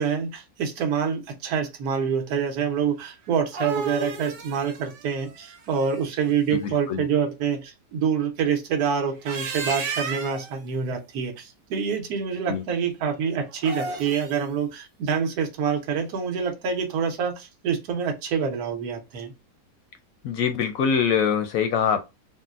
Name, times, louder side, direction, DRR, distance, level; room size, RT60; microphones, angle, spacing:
voice 1, 0.0-19.3, right 7 dB, 70° right, 1.2 m, -26 dB
sound 1, 3.3-6.3 9.0-10.5 13.5-14.4, right 4 dB, 85° right, 1.2 m, -33 dB
voice 2, 6.5-7.0 12.5-12.6 20.2-22.0, left 7 dB, 70° left, 0.8 m, -24 dB
3.8 x 2.1 x 2.4 m
omnidirectional pair, 1.8 m